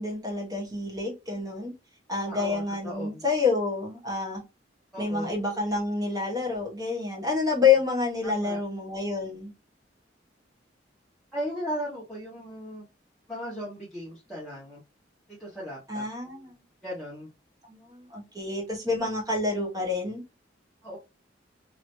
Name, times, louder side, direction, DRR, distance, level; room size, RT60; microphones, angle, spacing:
voice 1, 0.0-1.7 2.1-4.4 5.0-9.5 15.9-16.5 17.6-20.2, left 4 dB, 20° right, 1.1 m, -28 dB
voice 2, 2.2-3.2 4.9-5.4 8.2-8.6 11.3-12.8 13.3-14.8 15.4-16.0 16.8-17.3 20.8-21.0, equal, ahead, 1.3 m, -36 dB
3.1 x 2.9 x 2.7 m
head